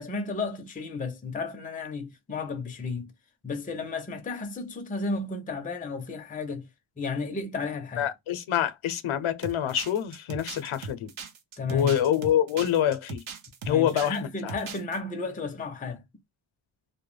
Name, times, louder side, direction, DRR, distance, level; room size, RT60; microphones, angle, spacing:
voice 1, 0.0-3.1 3.4-6.7 7.0-8.1 11.6-12.0 13.7-16.0, left 4 dB, 20° left, 0.4 m, -33 dB
voice 2, 8.0-11.1 11.7-13.2 13.7-14.2 14.4-14.5, left 10 dB, 85° left, 0.6 m, -26 dB
sound 1, 9.4-14.2 14.5-15.0, right 5 dB, 75° right, 0.7 m, -39 dB
2.1 x 2.1 x 3.1 m
wide cardioid pair, 175°, 47 cm